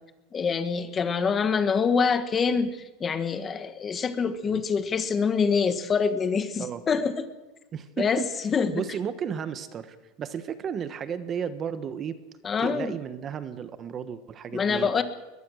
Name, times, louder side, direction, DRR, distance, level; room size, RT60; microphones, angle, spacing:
voice 1, 0.3-7.3 8.0-8.8 12.4-12.9 14.5-15.0, left 5 dB, 20° left, 10 dB, 1.4 m, -25 dB
voice 2, 7.7-8.3 8.7-12.2 12.6-14.9, right 7 dB, 30° right, 11 dB, 1.2 m, -33 dB
21.0 x 21.0 x 6.4 m, 1.1 s
supercardioid pair, 150°, 0 cm